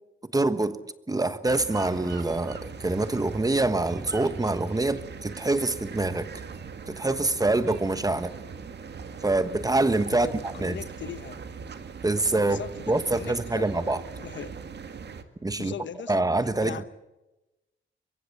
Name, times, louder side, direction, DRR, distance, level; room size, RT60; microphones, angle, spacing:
voice 1, 0.3-0.8 1.1-6.4 6.9-8.3 9.2-10.3 10.6-10.8 12.0-12.6 12.9-14.0 15.4-15.7 16.1-16.9, right 2 dB, 15° right, 1.3 m, -25 dB
sound 1, 1.5-15.2, right 5 dB, 55° right, 2.0 m, -41 dB
voice 2, 10.1-11.4 12.4-13.8 14.2-14.6 15.6-16.2 16.6-16.9, left 8 dB, 65° left, 1.1 m, -39 dB
24.0 x 23.5 x 7.2 m
cardioid pair, 115°, 21 cm